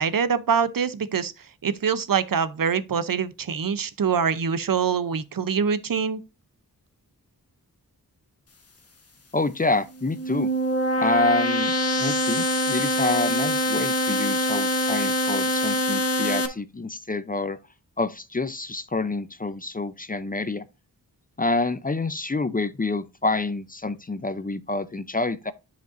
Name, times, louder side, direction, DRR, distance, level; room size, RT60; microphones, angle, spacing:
voice 1, 0.0-1.3 1.6-6.2, right 6 dB, 65° right, 0.7 m, -24 dB
voice 2, 9.3-10.5 11.0-17.6 18.0-20.6 21.4-25.5, left 3 dB, 25° left, 0.5 m, -27 dB
sound 1, 10.0-16.5, left 1 dB, 40° left, 1.2 m, -24 dB
10.5 x 5.1 x 2.6 m
wide cardioid pair, 90°, 36 cm